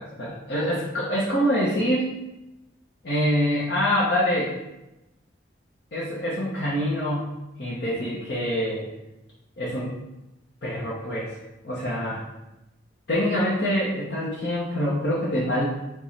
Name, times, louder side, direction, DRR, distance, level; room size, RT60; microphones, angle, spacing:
voice 1, 0.0-2.1 3.0-4.5 5.9-8.8 9.6-9.9 10.6-11.4 11.6-12.2 13.1-15.7, equal, 60° left, -8 dB, 0.8 m, -25 dB
4.9 x 2.3 x 4.1 m, 0.96 s
head